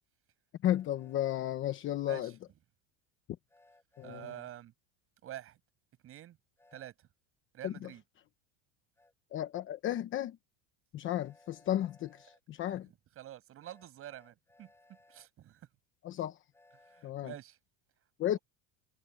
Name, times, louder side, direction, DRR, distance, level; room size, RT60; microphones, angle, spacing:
voice 1, 0.6-2.3 4.0-4.4 7.6-7.9 9.3-10.4 10.9-12.9 16.0-16.4 17.0-17.3 18.2-18.4, left 12 dB, 30° left, 1.0 m, -33 dB
Train, 0.6-1.4 3.5-4.5 6.6-6.9 9.0-9.1 11.2-12.4 13.6-15.3 16.5-17.1, left 2 dB, 5° left, 6.5 m, -63 dB
voice 2, 4.0-4.7 5.2-5.6 6.0-6.4 6.7-6.9 7.5-8.0 12.7-12.8 13.2-14.7 15.1-15.6 16.9-17.6, right 12 dB, 35° right, 7.2 m, -47 dB
cardioid pair, 170°, 40 cm